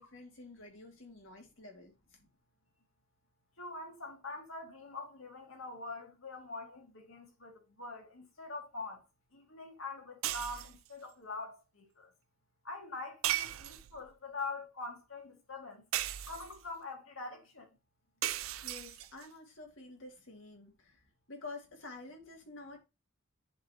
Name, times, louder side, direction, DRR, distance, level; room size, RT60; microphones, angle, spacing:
voice 1, 0.0-1.9 18.6-21.0 21.3-22.8, left 3 dB, 70° left, 2.1 m, -49 dB
voice 2, 3.6-9.0 9.3-12.1 12.6-15.8 16.3-17.7, left 3 dB, 90° left, 2.4 m, -44 dB
sound 1, 10.2-10.9 13.2-14.1 15.9-16.7 18.2-19.3, right 13 dB, 85° right, 0.5 m, -36 dB
10.5 x 4.0 x 2.9 m
head